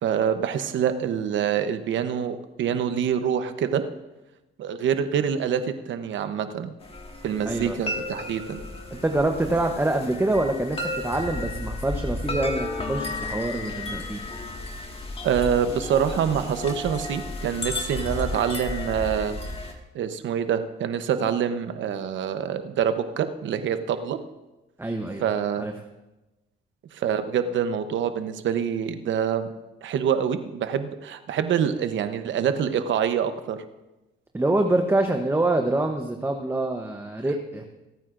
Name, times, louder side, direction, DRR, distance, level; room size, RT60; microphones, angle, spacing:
voice 1, 0.0-3.8 4.6-6.7 7.2-8.6 15.2-19.4 19.9-24.2 25.2-25.7 26.9-29.5 29.8-33.6, right 8 dB, 70° right, 10 dB, 0.9 m, -26 dB
sound 1, 6.8-19.7, left 2 dB, 30° left, 1.8 m, -33 dB
voice 2, 7.5-7.8 8.9-14.2 24.8-25.3 25.6-25.7 34.3-37.7, right 2 dB, 10° right, 4 dB, 0.9 m, -25 dB
26.0 x 9.1 x 2.6 m, 1.0 s
cardioid pair, 90°, 20 cm